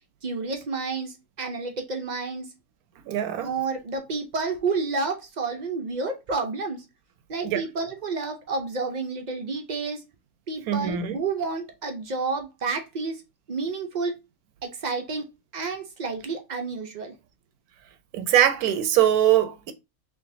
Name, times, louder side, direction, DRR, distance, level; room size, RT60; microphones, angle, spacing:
voice 1, 0.2-2.5 3.4-6.8 7.3-10.0 10.5-13.2 13.5-14.1 14.6-15.2 15.5-17.1, right 4 dB, 55° right, 0.5 m, -30 dB
voice 2, 3.1-3.5 7.4-7.6 10.7-11.2 18.1-19.7, right 11 dB, 80° right, 1.1 m, -22 dB
3.7 x 3.3 x 2.6 m
omnidirectional pair, 1.5 m